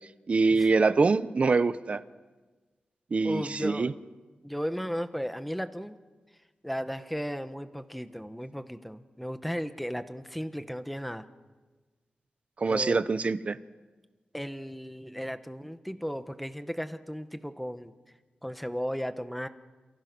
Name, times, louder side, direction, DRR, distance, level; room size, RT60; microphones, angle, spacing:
voice 1, 0.3-2.0 3.1-3.9 12.6-13.6, right 4 dB, 40° right, 13 dB, 1.0 m, -24 dB
voice 2, 3.2-4.0 4.4-5.9 6.6-11.2 12.7-13.0 14.3-17.9 18.4-19.5, equal, ahead, 10 dB, 1.3 m, -35 dB
30.0 x 27.0 x 6.2 m, 1.3 s
wide cardioid pair, 135°, 3 cm